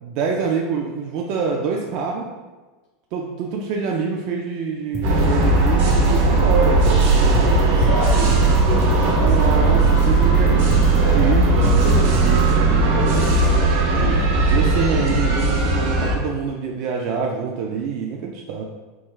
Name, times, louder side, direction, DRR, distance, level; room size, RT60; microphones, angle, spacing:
voice 1, 0.0-2.3 3.1-7.6 9.2-10.7 11.1-18.6, right 5 dB, 50° right, 0 dB, 0.3 m, -26 dB
sound 1, 4.9-12.4, equal, 10° left, 0.5 m, -29 dB
sound 2, 5.0-16.2, right 3 dB, 70° right, 0.7 m, -17 dB
voice 2, 7.1-9.8 11.8-12.1, left 1 dB, 65° left, -4 dB, 0.8 m, -30 dB
3.4 x 2.3 x 3.0 m, 1.2 s
supercardioid pair, 155°, 0 cm